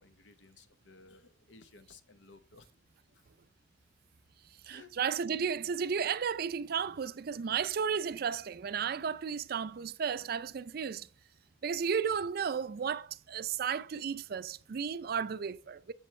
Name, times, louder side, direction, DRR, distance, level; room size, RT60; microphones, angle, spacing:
voice 1, 0.0-2.7 3.1-3.2 4.7-5.0, left 4 dB, 85° left, 0.9 m, -57 dB
voice 2, 4.7-11.1 11.6-15.9, right 7 dB, 55° right, 0.4 m, -33 dB
7.5 x 7.0 x 3.2 m
head